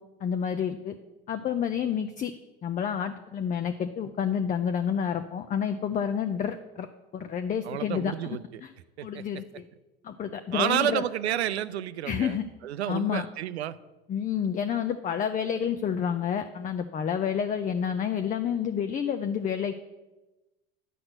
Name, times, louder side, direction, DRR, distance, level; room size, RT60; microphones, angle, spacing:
voice 1, 0.2-0.9 1.3-2.3 2.6-6.9 7.1-8.1 8.6-8.7 9.0-9.6 10.0-11.0 12.1-12.5 12.9-13.3 14.1-19.7, left 8 dB, 25° left, 8 dB, 0.5 m, -29 dB
voice 2, 7.6-8.6 9.0-9.2 10.5-13.8, right 11 dB, 90° right, 15 dB, 0.5 m, -30 dB
11.0 x 4.3 x 7.8 m, 1.1 s
hypercardioid pair, 90°, 31 cm